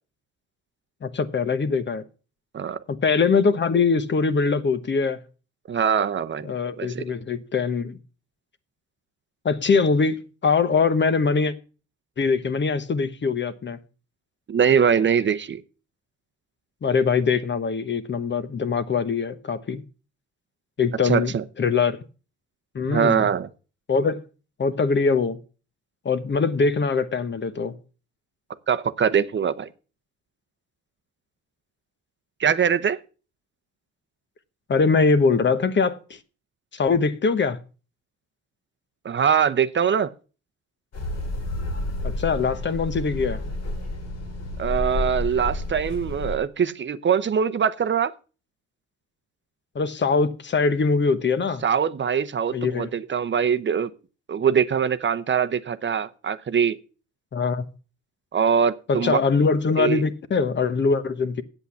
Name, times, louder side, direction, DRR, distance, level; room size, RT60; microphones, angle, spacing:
voice 1, 1.0-2.0 2.9-5.2 6.4-8.0 9.4-11.5 12.2-13.8 16.8-19.8 20.8-22.0 22.7-23.2 23.9-24.2 24.6-25.4 26.0-27.7 34.7-36.2 36.7-37.6 42.0-43.4 49.7-51.6 52.5-52.9 57.3-57.7 58.9-61.4, left 4 dB, 40° left, 1.1 m, -22 dB
voice 2, 5.7-7.0 14.5-15.6 21.0-21.4 22.9-23.5 28.7-29.7 32.4-33.0 39.0-40.1 44.6-48.1 51.6-53.9 54.3-56.8 58.3-59.2 59.8-60.0, right 7 dB, 40° right, 0.8 m, -22 dB
sound 1, 40.9-46.4, left 2 dB, 55° left, 2.7 m, -30 dB
8.2 x 8.0 x 7.1 m
cardioid pair, 90°, 30 cm